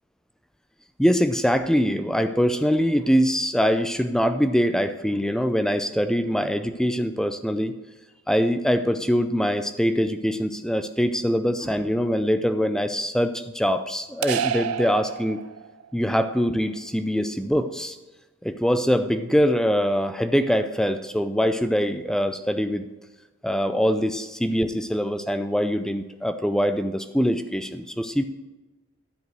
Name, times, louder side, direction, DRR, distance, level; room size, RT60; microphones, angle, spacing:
voice 1, 1.0-7.7 8.3-15.4 15.9-18.0 18.4-22.9 23.4-28.2, equal, 5° left, 10 dB, 0.4 m, -23 dB
sound 1, 14.2-15.9, right 8 dB, 90° right, 0.5 m, -28 dB
12.5 x 5.1 x 6.2 m, 1.2 s
head